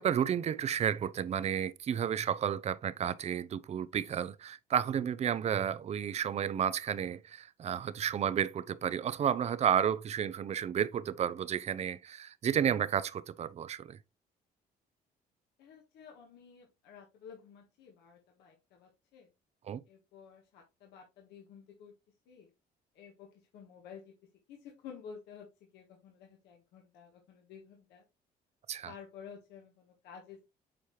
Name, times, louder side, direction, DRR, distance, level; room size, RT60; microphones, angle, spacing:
voice 1, 0.0-14.0 19.7-19.8 28.7-28.9, right 9 dB, 40° right, 0.5 m, -32 dB
voice 2, 15.6-19.3 19.8-21.9 22.3-22.5 22.9-24.1 24.5-25.5 25.7-28.0 28.8-30.4, left 7 dB, 80° left, 1.5 m, -52 dB
7.6 x 4.3 x 3.1 m
cardioid pair, 110°, 17 cm